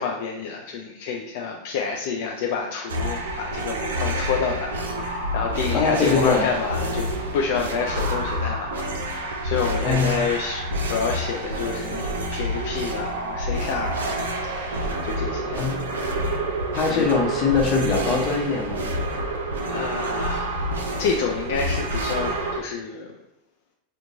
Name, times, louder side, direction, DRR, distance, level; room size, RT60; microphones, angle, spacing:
voice 1, 0.0-15.7 16.2-16.5 16.8-17.2 18.9-19.0 19.7-23.2, left 5 dB, 65° left, 0 dB, 0.3 m, -29 dB
sound 1, 2.9-22.6, right 1 dB, 85° right, 0.4 m, -28 dB
voice 2, 5.7-6.5 9.8-10.1 15.6-15.8 16.7-18.9, left 4 dB, 40° left, 0 dB, 0.7 m, -22 dB
2.9 x 2.1 x 2.6 m, 0.92 s
hypercardioid pair, 95°, 0 cm